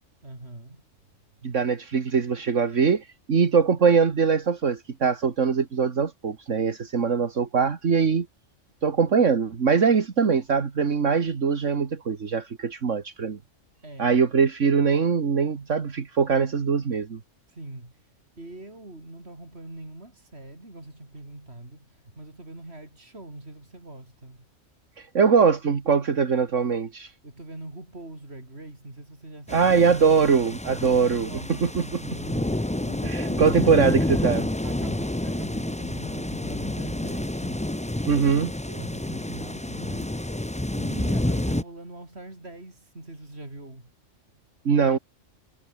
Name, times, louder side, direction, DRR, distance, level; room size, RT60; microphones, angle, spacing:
voice 1, 0.2-0.8 13.8-14.2 17.5-18.0 18.4-24.5 27.2-29.7 31.1-34.0 34.6-37.6 38.7-40.2 40.8-43.9, right 2 dB, 55° right, 6.2 m, -43 dB
voice 2, 1.4-8.3 8.8-13.4 14.0-17.2 25.0-27.1 29.5-31.3 31.6-31.8 33.0-34.5 38.1-38.5 44.7-45.0, right 5 dB, 70° right, 2.1 m, -22 dB
sound 1, 29.5-41.6, left 1 dB, 5° left, 0.7 m, -29 dB
omnidirectional pair, 1.3 m